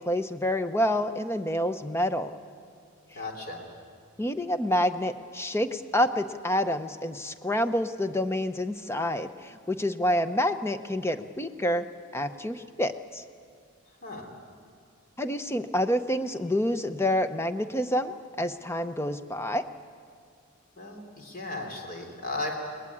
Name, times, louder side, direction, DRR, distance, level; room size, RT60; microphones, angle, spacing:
voice 1, 0.0-2.4 4.2-11.8 12.1-13.2 15.2-19.6, left 1 dB, 10° left, 10 dB, 0.7 m, -28 dB
voice 2, 3.1-3.6 14.0-14.3 20.8-22.6, left 2 dB, 45° left, 2 dB, 3.5 m, -36 dB
22.5 x 20.0 x 8.6 m, 2.3 s
head